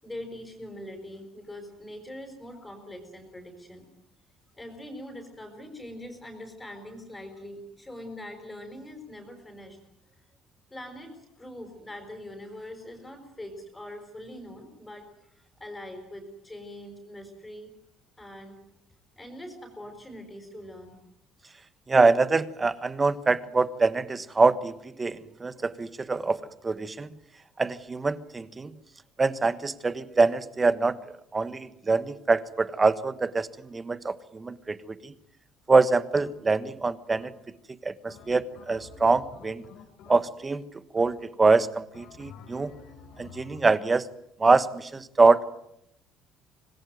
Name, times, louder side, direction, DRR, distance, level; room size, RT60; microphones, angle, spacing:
voice 1, 0.0-3.9 4.5-9.8 10.7-17.7 18.2-18.6 19.2-21.0, left 1 dB, 10° left, 3 dB, 5.5 m, -43 dB
voice 2, 21.9-27.1 27.6-28.7 29.2-31.0 31.3-35.1 35.7-37.3 37.8-39.6 40.1-40.6 40.9-42.7 43.2-44.1 44.4-45.5, right 3 dB, 20° right, 14 dB, 1.3 m, -24 dB
sound 1, 36.1-36.6 37.1-37.6 38.1-40.5 41.0-41.5 41.9-43.9, left 6 dB, 70° left, 4.7 m, -50 dB
26.0 x 20.0 x 9.4 m, 0.77 s
cardioid pair, 130°, 0 cm